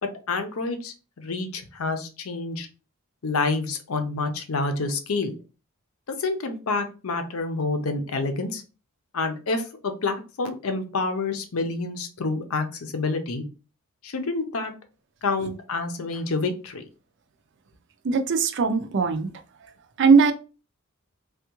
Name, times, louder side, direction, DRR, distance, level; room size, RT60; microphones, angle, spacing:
voice 1, 0.0-2.7 3.2-5.3 6.1-8.6 9.1-13.4 14.0-14.7 15.2-16.9, left 3 dB, 75° left, 0.6 m, -28 dB
voice 2, 18.0-19.3 20.0-20.3, right 5 dB, 55° right, 0.4 m, -19 dB
3.4 x 2.3 x 2.9 m
head